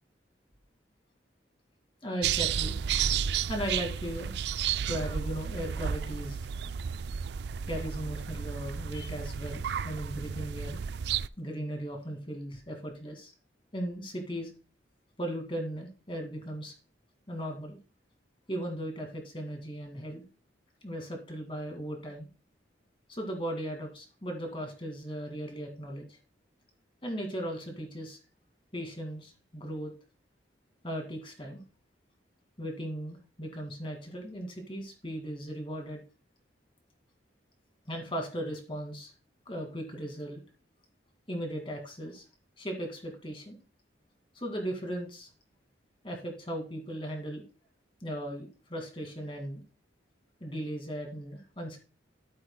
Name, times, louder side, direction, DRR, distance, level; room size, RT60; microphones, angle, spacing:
voice 1, 2.0-2.8 3.5-4.3 4.9-6.4 7.7-10.8 11.4-13.3 13.7-14.5 15.2-16.7 17.3-17.8 18.5-20.2 20.8-22.3 23.1-26.2 27.0-28.2 28.7-29.9 30.8-31.6 32.6-36.0 37.9-39.1 39.5-40.4 41.3-42.2 42.6-43.6 44.3-45.3 46.0-47.4 48.0-49.6 50.4-51.8, equal, 25° left, 3 dB, 2.2 m, -37 dB
sound 1, 2.2-11.3, right 8 dB, 60° right, 0.3 m, -32 dB
12.0 x 9.0 x 2.3 m, 0.33 s
head